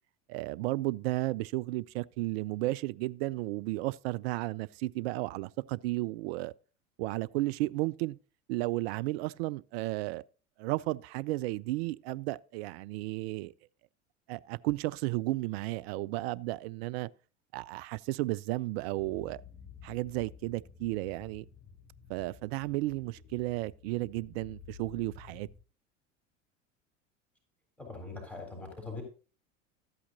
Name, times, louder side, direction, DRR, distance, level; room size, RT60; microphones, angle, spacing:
voice 1, 0.3-6.5 7.0-8.2 8.5-10.2 10.6-13.5 14.3-17.1 17.5-19.4 19.8-21.5 22.1-25.5, right 18 dB, 55° right, 0.4 m, -33 dB
sound 1, 18.9-25.6, left 6 dB, 30° left, 2.4 m, -52 dB
voice 2, 27.8-29.0, left 3 dB, 5° left, 3.5 m, -42 dB
13.0 x 8.5 x 2.7 m
figure-of-eight pair, 80°, 37 cm